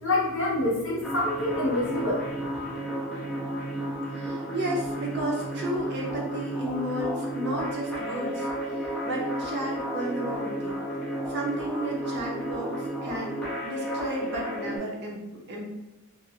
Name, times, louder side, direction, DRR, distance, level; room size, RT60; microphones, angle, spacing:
voice 1, 0.0-2.2, left 2 dB, 60° left, -5 dB, 0.9 m, -26 dB
sound 1, 1.0-14.8, right 1 dB, 5° left, 0.5 m, -32 dB
voice 2, 4.1-10.8 11.3-12.8 13.0-15.2 15.5-15.6, right 1 dB, 50° right, -1 dB, 0.6 m, -33 dB
2.3 x 2.0 x 2.7 m, 0.95 s
head